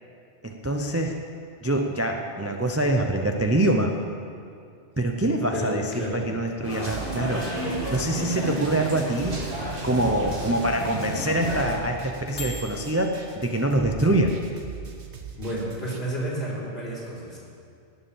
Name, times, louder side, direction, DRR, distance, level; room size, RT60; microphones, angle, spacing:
voice 1, 0.4-1.2 1.6-3.9 5.0-7.4 7.9-9.4 9.8-14.4, right 1 dB, 15° right, 3 dB, 0.6 m, -25 dB
sound 1, 5.0-13.3, left 3 dB, 75° left, 2.2 m, -41 dB
voice 2, 5.5-6.2 15.4-17.4, right 1 dB, 55° left, -6 dB, 4.6 m, -31 dB
sound 2, 6.6-11.8, right 1 dB, 45° right, 2.3 m, -32 dB
sound 3, 6.8-16.0, right 5 dB, 70° right, 1.5 m, -40 dB
18.5 x 7.1 x 7.2 m, 2.4 s
omnidirectional pair, 1.2 m